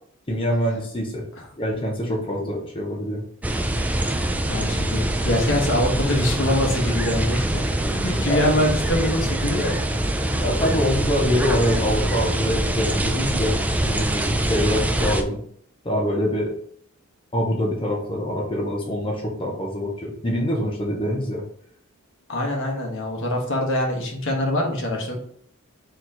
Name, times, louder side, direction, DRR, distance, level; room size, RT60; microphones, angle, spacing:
voice 1, 0.3-1.2 1.6-3.2 8.3-8.4 10.4-15.4 15.8-16.5 17.3-21.4, equal, 25° left, -1 dB, 0.8 m, -25 dB
sound 1, 3.4-15.2, right 1 dB, 5° right, 0.3 m, -24 dB
voice 2, 4.5-7.7 7.9-9.8 22.3-25.2, left 1 dB, 65° left, 1 dB, 1.1 m, -24 dB
4.4 x 3.0 x 3.8 m, 0.62 s
head